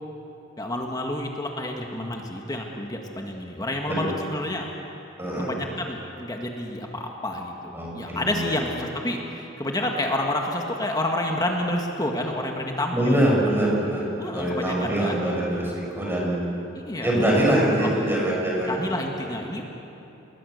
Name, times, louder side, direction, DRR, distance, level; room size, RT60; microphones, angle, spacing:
voice 1, 0.6-4.7 5.4-13.3 14.2-15.3 16.7-17.2 17.8-17.9 18.7-19.6, left 1 dB, 20° left, 1 dB, 1.8 m, -29 dB
voice 2, 5.2-5.5 7.7-8.5 12.9-14.1 14.3-16.4 17.0-18.9 19.5-19.6, right 1 dB, 10° right, -4 dB, 7.1 m, -24 dB
28.5 x 21.5 x 6.7 m, 2.9 s
head